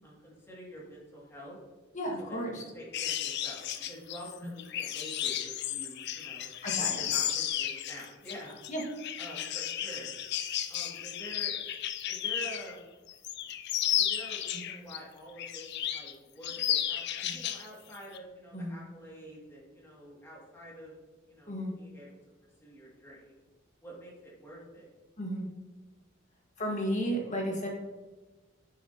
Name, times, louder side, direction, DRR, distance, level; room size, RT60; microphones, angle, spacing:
voice 1, 0.0-1.6 2.0-6.5 6.8-8.6 9.2-10.1 10.7-11.5 12.1-12.9 14.0-21.0 21.3-22.1 22.6-23.4 23.8-24.9, equal, 15° left, -5 dB, 2.3 m, -47 dB
voice 2, 1.9-2.6 4.4-4.6 6.6-7.1 8.7-8.8 14.5-14.7 17.2-17.4 18.5-18.8 21.5-21.7 25.2-25.5 26.6-27.7, equal, 40° left, 0 dB, 1.7 m, -33 dB
sound 1, 2.9-12.7 13.1-15.0 15.4-16.1 16.4-17.7 17.9-18.2, left 11 dB, 55° left, 0.5 m, -33 dB
9.3 x 6.6 x 2.9 m, 1.2 s
head